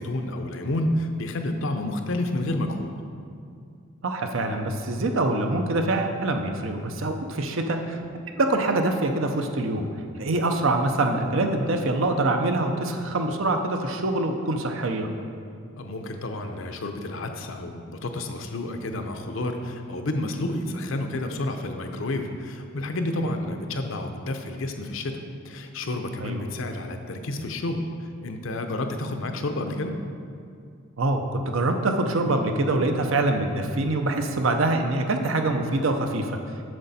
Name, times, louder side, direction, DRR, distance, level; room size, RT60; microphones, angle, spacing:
voice 1, 0.0-2.9 15.8-25.2 25.4-30.0, left 1 dB, 70° left, 5 dB, 0.6 m, -30 dB
voice 2, 4.0-8.0 8.4-9.9 10.2-15.1 26.2-26.4 31.0-36.3, right 2 dB, 70° right, 5 dB, 0.7 m, -24 dB
7.7 x 6.6 x 4.1 m, 2.4 s
head